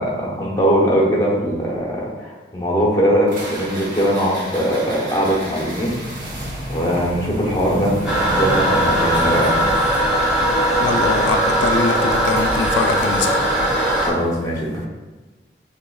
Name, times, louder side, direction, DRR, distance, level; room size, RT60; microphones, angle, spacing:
voice 1, 0.0-6.0 6.7-7.9 8.2-9.5 13.9-14.9, equal, 20° left, -4 dB, 0.8 m, -20 dB
sound 1, 3.3-13.5, equal, 50° right, 0.9 m, -33 dB
Toilet flush, 8.0-14.1, right 1 dB, 5° right, 1.0 m, -19 dB
voice 2, 10.8-13.4, left 4 dB, 85° left, 5 dB, 0.3 m, -23 dB
6.6 x 2.5 x 2.3 m, 1.2 s
head